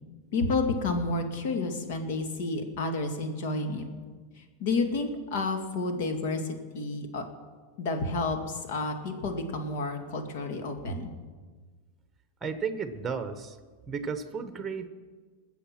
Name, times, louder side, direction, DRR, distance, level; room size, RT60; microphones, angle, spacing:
voice 1, 0.3-3.9 4.6-7.2 7.8-11.1, left 3 dB, 65° left, 5 dB, 2.2 m, -30 dB
voice 2, 12.4-13.6 13.9-14.9, right 5 dB, 15° right, 10 dB, 1.1 m, -33 dB
21.0 x 7.3 x 6.0 m, 1.4 s
hypercardioid pair, 120°, 0 cm